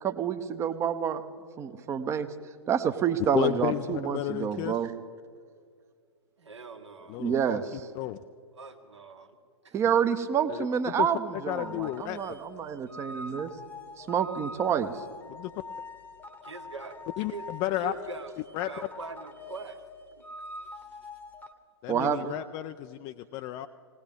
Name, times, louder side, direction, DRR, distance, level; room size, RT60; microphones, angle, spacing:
voice 1, 0.0-1.2 1.6-2.3 2.7-4.9 7.2-7.6 9.7-13.5 14.0-15.0 21.9-22.4, right 8 dB, 20° right, 11 dB, 0.7 m, -28 dB
voice 2, 3.3-4.8 7.1-7.6 7.9-8.2 10.5-11.1 11.5-12.2 15.3-15.5 17.2-17.9 18.5-18.7 21.8-23.7, left 15 dB, 25° left, 8 dB, 0.3 m, -32 dB
voice 3, 6.4-7.2 8.5-9.4 9.6-9.8 16.5-17.5 17.8-19.8 20.2-20.3 20.7-21.0, right 4 dB, 75° right, 5 dB, 1.6 m, -43 dB
sound 1, 11.6-21.5, left 2 dB, 10° left, 1.0 m, -44 dB
19.5 x 18.5 x 3.6 m, 2.1 s
figure-of-eight pair, 110°, 15 cm